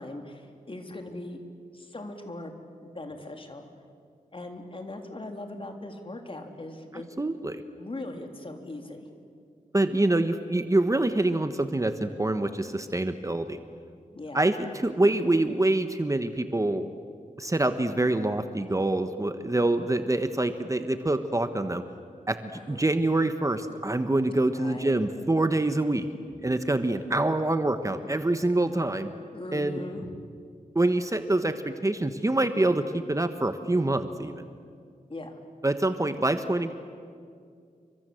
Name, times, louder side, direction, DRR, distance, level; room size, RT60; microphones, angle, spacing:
voice 1, 0.0-1.4 1.7-2.5 2.8-3.7 4.3-7.1 7.8-9.1 14.1-14.4 22.5-22.8 24.5-25.2 29.3-30.1 35.1-35.4, left 2 dB, 40° left, 4 dB, 3.5 m, -39 dB
voice 2, 7.2-7.6 9.7-13.6 14.3-16.9 17.4-21.8 22.3-26.1 26.4-29.1 29.5-29.8 30.7-34.3 35.6-36.7, right 2 dB, 20° right, 9 dB, 1.3 m, -25 dB
29.5 x 24.0 x 7.9 m, 2.2 s
wide cardioid pair, 70°, 14 cm